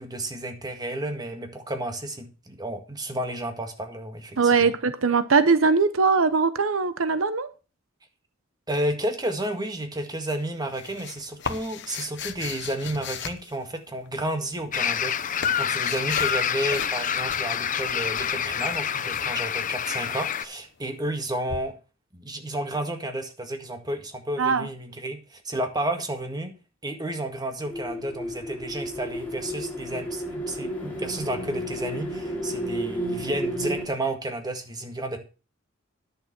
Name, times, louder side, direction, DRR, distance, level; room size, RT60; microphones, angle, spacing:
voice 1, 0.0-4.7 8.7-15.1 15.6-21.7 22.1-26.5 26.8-35.2, right 1 dB, 20° right, 1.8 m, -31 dB
voice 2, 4.4-7.5 24.4-24.7, right 4 dB, 90° right, 0.8 m, -21 dB
sound 1, 10.3-14.1 14.9-16.4 16.7-17.0 17.3-19.3 21.5-21.6, left 6 dB, 60° left, 1.1 m, -37 dB
sound 2, 14.7-20.4, left 8 dB, 40° left, 0.6 m, -27 dB
sound 3, 27.6-33.9, equal, 10° left, 2.8 m, -32 dB
10.5 x 6.7 x 6.0 m
head